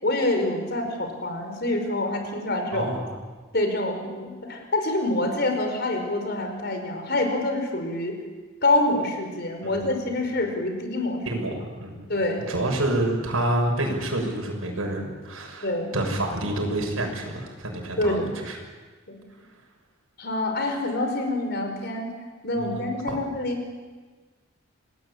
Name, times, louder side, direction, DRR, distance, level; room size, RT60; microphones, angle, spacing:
voice 1, 0.0-2.9 3.5-8.2 8.6-11.4 12.1-12.6 15.6-16.0 18.0-18.3 19.1-19.2 20.2-22.1 22.4-23.6, left 2 dB, 50° left, 4 dB, 5.1 m, -26 dB
voice 2, 2.7-3.0 9.6-10.0 11.2-12.1 12.5-18.6 22.6-22.8 23.1-23.2, right 1 dB, 90° right, 2 dB, 6.7 m, -28 dB
28.0 x 19.5 x 8.6 m, 1.4 s
head